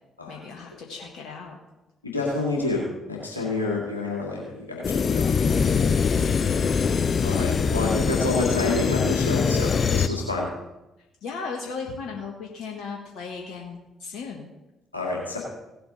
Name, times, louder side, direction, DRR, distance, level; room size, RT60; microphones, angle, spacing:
voice 1, 0.3-1.6 5.9-6.5 11.2-14.5, left 5 dB, 60° left, 0 dB, 1.5 m, -36 dB
voice 2, 2.0-5.3 7.2-10.5 14.9-15.4, left 2 dB, 90° left, -3 dB, 2.2 m, -28 dB
sound 1, 4.8-10.1, left 6 dB, 45° left, 0.6 m, -23 dB
17.0 x 7.8 x 4.0 m, 0.97 s
figure-of-eight pair, 45°, 0 cm